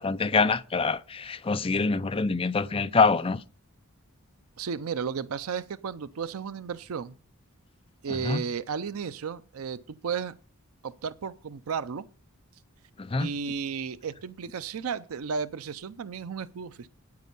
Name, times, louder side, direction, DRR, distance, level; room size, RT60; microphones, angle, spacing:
voice 1, 0.0-3.4 8.1-8.4 13.0-13.3, left 4 dB, 25° left, 0.5 m, -25 dB
voice 2, 4.6-7.1 8.0-10.3 10.8-12.1 13.2-16.9, right 6 dB, 85° right, 0.5 m, -33 dB
9.5 x 9.2 x 5.4 m
head